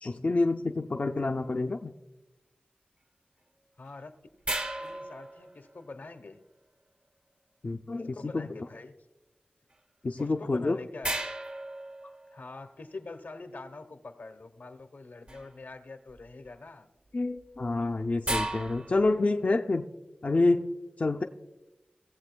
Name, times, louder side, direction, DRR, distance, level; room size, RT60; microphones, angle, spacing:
voice 1, 0.0-1.9 7.6-8.5 10.0-10.8 17.1-19.9 20.2-21.2, left 2 dB, 50° left, 4 dB, 0.4 m, -28 dB
voice 2, 3.8-4.2 4.8-6.4 7.9-9.0 10.2-11.2 12.3-16.9, left 3 dB, 85° left, 7 dB, 0.9 m, -45 dB
sound 1, 4.4-6.0 10.2-10.3 11.0-12.6 15.3-15.6 16.1-16.5 17.4-19.3, right 1 dB, 35° right, 0.8 m, -36 dB
18.0 x 7.6 x 2.2 m, 1.0 s
wide cardioid pair, 55°, 3 cm